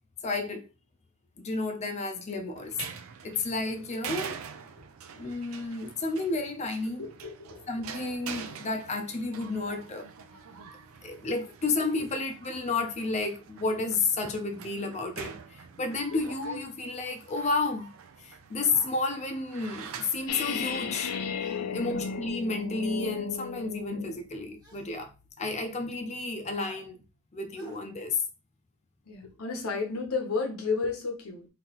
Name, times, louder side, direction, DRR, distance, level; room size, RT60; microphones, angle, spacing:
voice 1, 0.2-0.6 1.4-2.8 3.2-4.4 5.2-7.0 7.7-10.1 11.0-17.9 18.2-21.1 21.7-25.1 25.4-27.0 27.3-28.2, left 3 dB, 30° left, 0.5 m, -31 dB
sound 1, 2.6-21.3, right 7 dB, 65° right, 0.5 m, -45 dB
voice 2, 7.0-7.8 8.5-8.6 12.0-12.1 21.6-22.0 29.1-31.5, left 4 dB, 70° left, 0.9 m, -33 dB
sound 2, 18.6-19.0 21.4-21.7 22.9-23.0 24.6-24.9 26.6-26.8 27.5-27.8, right 2 dB, 15° right, 1.0 m, -52 dB
sound 3, 20.3-24.3, left 6 dB, 90° left, 0.4 m, -34 dB
3.9 x 2.8 x 2.9 m
head